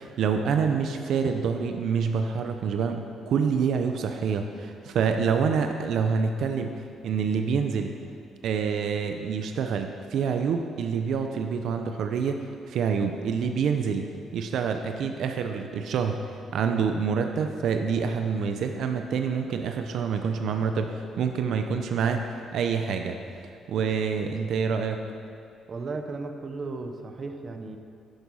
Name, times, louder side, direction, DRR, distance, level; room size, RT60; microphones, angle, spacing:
voice 1, 0.2-6.8 7.0-7.9 8.4-14.1 14.3-16.2 16.5-23.2 23.5-25.0, right 6 dB, 60° right, 5 dB, 0.7 m, -27 dB
voice 2, 25.7-27.8, right 3 dB, 30° right, 5 dB, 0.8 m, -35 dB
11.0 x 10.5 x 5.5 m, 2.4 s
cardioid pair, 155°, 0 cm